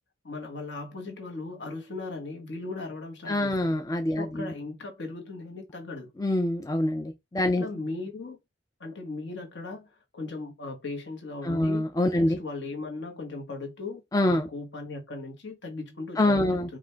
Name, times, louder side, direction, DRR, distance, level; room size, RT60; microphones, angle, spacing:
voice 1, 0.2-3.8 4.2-6.1 7.6-8.4 8.8-11.9 12.2-16.8, left 3 dB, 65° left, 1.3 m, -38 dB
voice 2, 3.3-4.5 6.2-7.6 11.4-12.4 14.1-14.5 16.2-16.7, left 1 dB, 20° left, 0.3 m, -25 dB
4.9 x 2.5 x 3.3 m
head